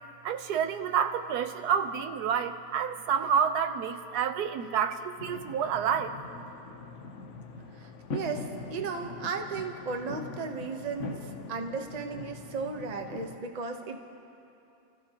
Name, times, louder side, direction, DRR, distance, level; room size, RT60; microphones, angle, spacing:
voice 1, 0.2-6.2, right 7 dB, 80° right, 8 dB, 1.2 m, -29 dB
sound 1, 5.2-13.4, left 4 dB, 55° left, 1.0 m, -42 dB
voice 2, 7.7-14.0, right 4 dB, 30° right, 4 dB, 0.8 m, -35 dB
29.5 x 15.0 x 2.9 m, 2.7 s
omnidirectional pair, 1.7 m